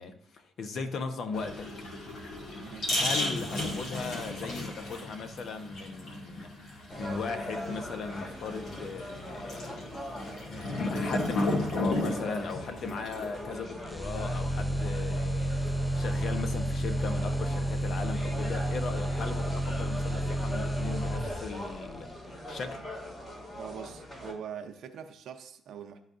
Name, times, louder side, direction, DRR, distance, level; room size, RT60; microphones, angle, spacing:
voice 1, 0.0-1.7 2.9-9.8 10.5-22.1 22.5-22.8, left 4 dB, 65° left, 0.8 m, -38 dB
sound 1, 1.3-13.6, left 1 dB, 80° left, 2.0 m, -34 dB
voice 2, 2.6-2.9 23.6-26.0, right 8 dB, 75° right, 0.6 m, -43 dB
sound 2, 6.9-24.3, left 1 dB, 40° left, 2.2 m, -41 dB
sound 3, 13.9-21.8, equal, ahead, 0.3 m, -31 dB
11.5 x 4.0 x 2.5 m
cardioid pair, 90°, 0 cm